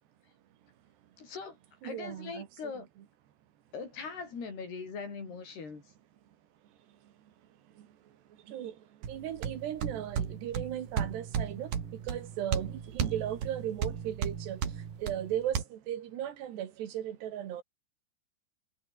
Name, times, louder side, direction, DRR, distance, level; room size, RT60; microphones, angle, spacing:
voice 1, 1.2-1.6 1.8-2.9 3.7-5.8, left 5 dB, 75° left, 8.4 m, -41 dB
voice 2, 1.8-2.5 2.8-2.9 6.9-7.3 7.7-17.6, right 11 dB, 85° right, 4.2 m, -37 dB
sound 1, 9.0-15.6, right 8 dB, 60° right, 4.3 m, -35 dB
omnidirectional pair, 4.7 m